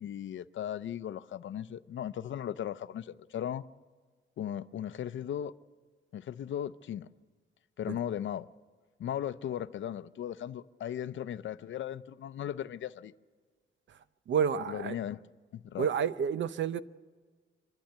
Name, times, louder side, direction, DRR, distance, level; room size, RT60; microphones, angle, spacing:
voice 1, 0.0-3.7 4.4-5.5 6.1-7.1 7.8-8.5 9.0-13.1 14.7-15.2 15.5-15.9, left 10 dB, 75° left, 0.6 m, -37 dB
voice 2, 14.3-15.0 15.8-16.8, right 7 dB, 70° right, 0.7 m, -29 dB
24.5 x 12.0 x 9.2 m
wide cardioid pair, 150°, 20 cm